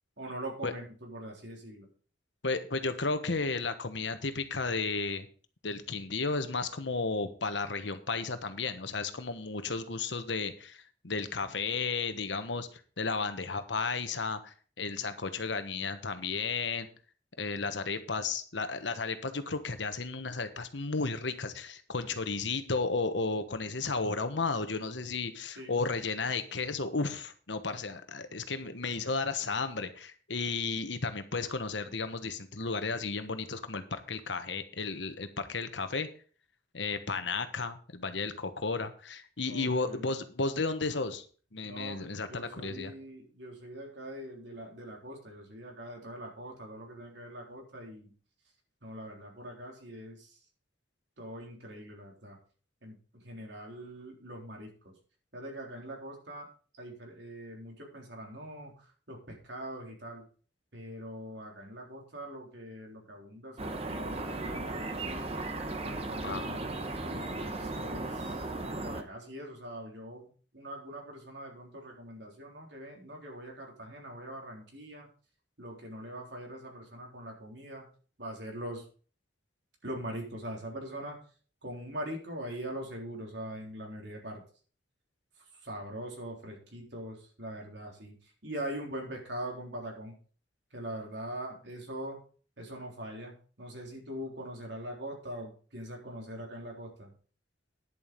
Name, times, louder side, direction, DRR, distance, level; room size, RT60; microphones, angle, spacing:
voice 1, 0.2-1.9 25.6-25.7 39.5-40.1 41.6-48.1 48.8-50.3 51.2-52.4 52.8-54.9 55.3-56.5 56.8-58.7 59.1-60.2 60.7-64.8 65.8-68.4 68.8-70.3 70.5-75.1 75.6-77.9 78.2-78.8 79.8-81.2 81.6-84.4 85.6-88.1 88.4-90.1 90.7-92.2 92.6-97.1, right 1 dB, 70° right, 0 dB, 3.7 m, -42 dB
voice 2, 2.4-5.3 5.6-10.8 11.0-16.9 17.4-36.1 36.7-41.2 41.5-42.9 66.2-66.5, left 4 dB, 80° left, 9 dB, 1.3 m, -33 dB
sound 1, 63.6-69.0, right 2 dB, 35° right, 1.2 m, -36 dB
10.5 x 7.4 x 5.2 m, 0.41 s
head